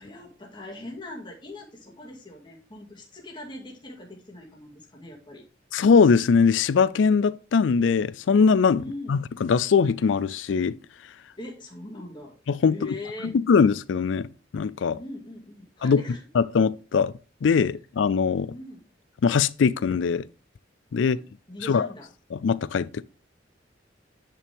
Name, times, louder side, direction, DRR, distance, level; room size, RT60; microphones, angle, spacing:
voice 1, 0.0-5.4 8.8-9.2 11.4-12.3 12.7-13.4 14.9-16.2 18.4-18.9 21.0-22.1, left 1 dB, 25° left, 2.3 m, -41 dB
voice 2, 5.7-8.8 9.1-10.8 12.5-12.8 13.3-14.3 14.5-15.0 15.8-16.0 16.3-17.1 17.4-18.5 19.2-20.3 20.9-21.2 21.6-21.9 22.3-23.0, left 5 dB, 75° left, 0.4 m, -21 dB
9.7 x 5.7 x 3.5 m
head